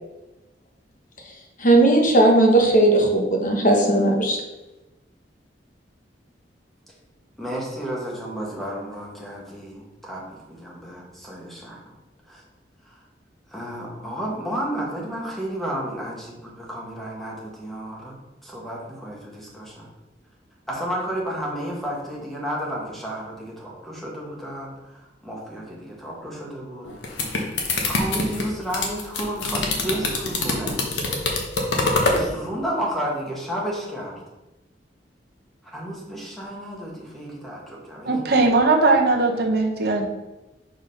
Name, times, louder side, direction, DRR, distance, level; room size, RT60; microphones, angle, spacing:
voice 1, 1.6-4.4, right 1 dB, 45° left, 1 dB, 1.1 m, -17 dB
voice 2, 7.4-11.8 12.3-12.4 12.8-13.0 13.5-18.2 18.4-19.9 20.7-27.3 27.9-30.8 32.0-34.2 35.7-38.2, equal, ahead, -4 dB, 1.4 m, -32 dB
sound 1, 26.8-32.2, left 2 dB, 75° left, 1.1 m, -24 dB
voice 3, 38.0-40.1, right 3 dB, 60° right, 2 dB, 1.0 m, -19 dB
4.9 x 4.0 x 5.3 m, 1.0 s
head